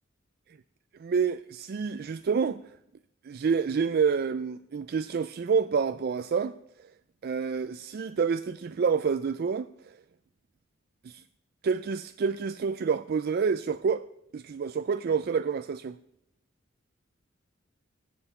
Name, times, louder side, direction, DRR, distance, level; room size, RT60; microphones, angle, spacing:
voice 1, 1.0-2.6 3.2-6.9 7.2-10.0 11.0-11.2 11.6-14.0 14.3-16.0, right 5 dB, 50° right, 0.4 m, -28 dB
14.0 x 7.6 x 7.1 m
head